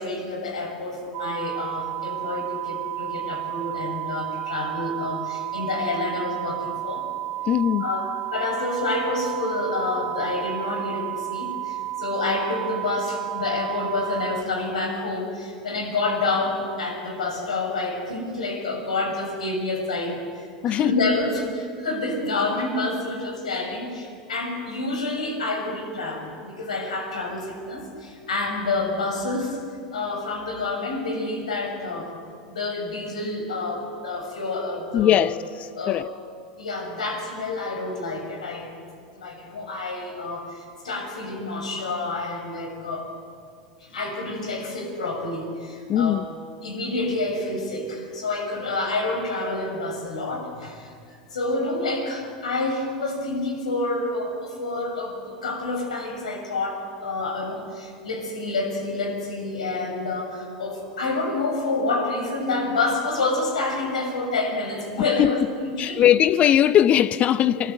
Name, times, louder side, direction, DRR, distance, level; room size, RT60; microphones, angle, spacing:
voice 1, 0.0-7.1 7.8-29.6 29.9-32.1 32.5-35.3 35.8-36.1 36.6-38.8 39.1-43.1 43.8-46.2 46.6-66.1 67.5-67.6, left 2 dB, 80° left, 6.4 m, -28 dB
sound 1, 1.1-14.4, right 14 dB, 45° right, 1.5 m, -32 dB
voice 2, 7.5-7.9 20.6-21.0 34.9-36.1 45.9-46.3 65.0-65.3 65.8-67.7, left 10 dB, 35° left, 0.7 m, -20 dB
29.0 x 20.0 x 8.2 m
figure-of-eight pair, 85°, 4 cm